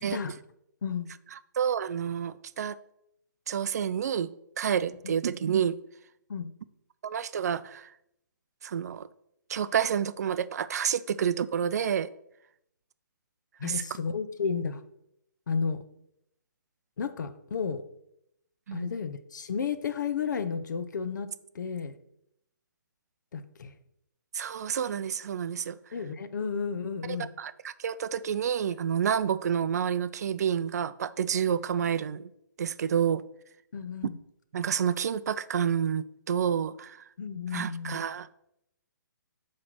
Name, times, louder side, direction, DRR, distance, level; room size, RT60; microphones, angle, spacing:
voice 1, 1.6-2.8 3.5-4.3 4.6-5.8 7.0-7.9 8.6-9.1 9.5-12.1 13.6-13.9 18.7-18.9 24.3-25.8 27.1-32.3 32.6-33.2 34.5-37.0 37.5-38.4, right 8 dB, 55° right, 0.4 m, -29 dB
voice 2, 13.6-14.8 15.5-15.8 17.0-17.8 18.7-21.9 23.3-23.8 25.9-27.3 33.7-34.2 37.2-38.0, left 6 dB, 65° left, 0.7 m, -32 dB
7.7 x 3.2 x 5.9 m
hypercardioid pair, 150°, 11 cm